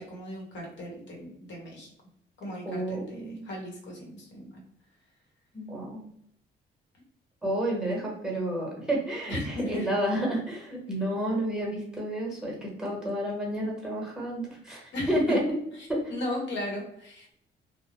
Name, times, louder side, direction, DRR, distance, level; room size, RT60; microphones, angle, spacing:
voice 1, 0.0-1.9 2.4-4.6 9.3-9.9 14.9-15.4 16.1-17.3, left 1 dB, 65° left, -1 dB, 1.1 m, -36 dB
voice 2, 2.6-3.5 5.5-6.0 7.4-15.4 15.9-16.0, right 1 dB, 5° right, -1 dB, 1.2 m, -30 dB
2.4 x 2.2 x 3.0 m, 0.72 s
cardioid pair, 90°, 20 cm